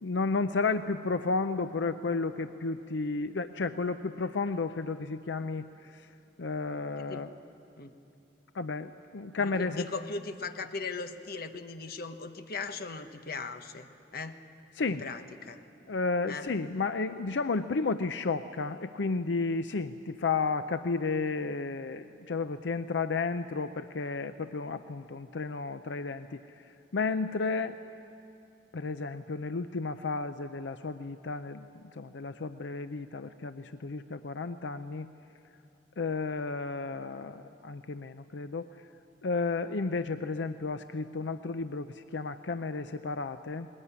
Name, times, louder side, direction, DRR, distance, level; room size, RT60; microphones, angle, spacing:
voice 1, 0.0-7.4 8.5-9.9 14.7-15.1 15.9-27.8 28.7-35.1 36.0-38.9 39.2-43.7, left 4 dB, 85° left, 10 dB, 0.6 m, -32 dB
voice 2, 9.4-13.9 14.1-14.4 15.0-15.6 16.3-16.5, left 4 dB, 60° left, 8 dB, 1.1 m, -38 dB
20.5 x 20.0 x 9.7 m, 2.7 s
head